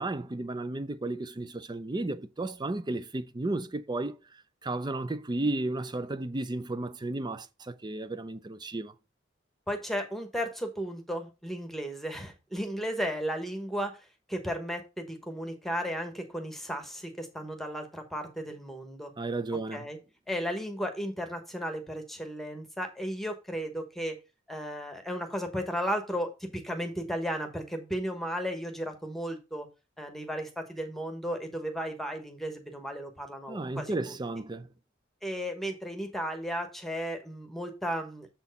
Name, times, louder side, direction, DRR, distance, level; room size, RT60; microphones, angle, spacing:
voice 1, 0.0-4.2 4.6-8.9 19.2-19.9 33.5-34.7, right 2 dB, 20° right, 0.5 m, -33 dB
voice 2, 9.7-14.0 14.3-19.1 19.7-20.0 20.3-24.2 24.5-29.7 30.0-34.2 35.2-38.3, equal, ahead, 1.1 m, -34 dB
7.1 x 4.5 x 5.2 m
head